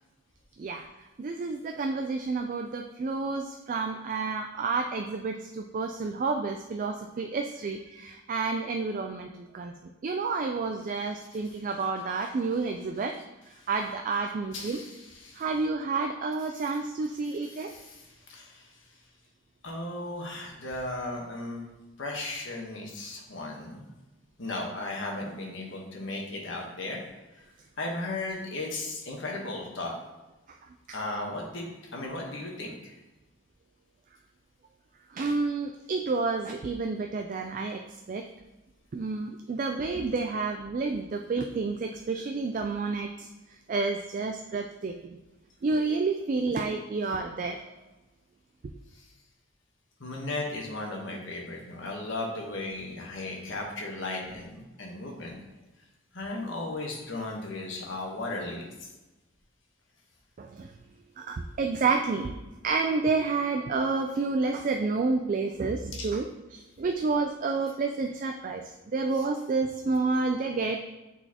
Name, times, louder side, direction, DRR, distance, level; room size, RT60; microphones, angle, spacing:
voice 1, 1.2-9.3 9.5-9.7 10.0-13.2 13.7-14.8 15.4-17.7 30.9-31.0 35.1-37.8 38.1-38.3 38.9-43.3 43.7-45.2 45.6-47.6 60.4-60.7 61.2-62.3 62.6-68.6 68.9-70.8, right 4 dB, 40° right, 4 dB, 0.3 m, -29 dB
voice 2, 14.5-15.5 16.5-16.7 17.1-18.8 19.6-21.6 22.0-23.9 24.4-27.0 27.3-27.4 27.8-29.9 30.9-32.9 48.9-49.1 50.0-55.4 56.1-58.9 65.9-66.1 69.1-69.3, left 2 dB, 65° left, 0 dB, 1.2 m, -36 dB
8.9 x 4.2 x 2.9 m, 1.1 s
head